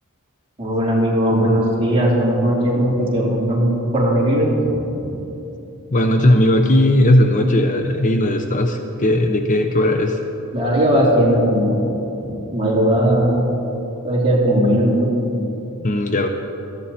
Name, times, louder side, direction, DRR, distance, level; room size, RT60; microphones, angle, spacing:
voice 1, 0.6-4.6 4.8-5.0 10.5-11.9 12.2-13.4 14.0-15.2, equal, 25° right, -6 dB, 3.7 m, -18 dB
voice 2, 5.9-10.2 15.8-16.3, left 1 dB, 35° left, 5 dB, 0.7 m, -17 dB
18.5 x 14.0 x 4.3 m, 3.0 s
head